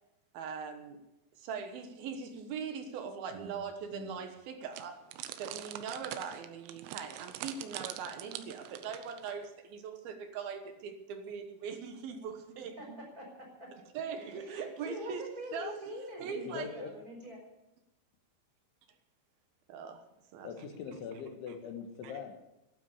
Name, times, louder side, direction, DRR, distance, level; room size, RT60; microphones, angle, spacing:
voice 1, 0.3-1.0 1.4-5.0 5.4-13.0 13.9-15.8 16.2-16.9 19.7-20.0 20.3-20.7 21.5-21.6 22.0-22.1, right 6 dB, 65° right, 7 dB, 2.6 m, -41 dB
sound 1, 4.7-9.5, right 12 dB, 85° right, 3.4 m, -44 dB
voice 2, 12.8-13.8 14.2-17.4, equal, 20° right, 0 dB, 5.1 m, -45 dB
voice 3, 16.5-16.9 20.4-22.4, left 6 dB, 80° left, 5 dB, 4.0 m, -42 dB
12.5 x 12.5 x 8.3 m, 0.92 s
omnidirectional pair, 5.4 m